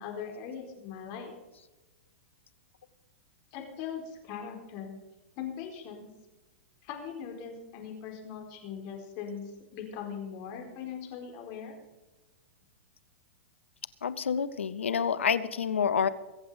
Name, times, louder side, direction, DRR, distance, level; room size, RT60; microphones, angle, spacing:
voice 1, 0.0-1.3 3.5-4.9 5.4-6.1 6.8-11.7, left 7 dB, 45° left, 3 dB, 4.4 m, -40 dB
voice 2, 14.0-16.1, left 7 dB, 80° left, 15 dB, 1.0 m, -28 dB
23.0 x 8.0 x 5.1 m, 1.1 s
hypercardioid pair, 110°, 7 cm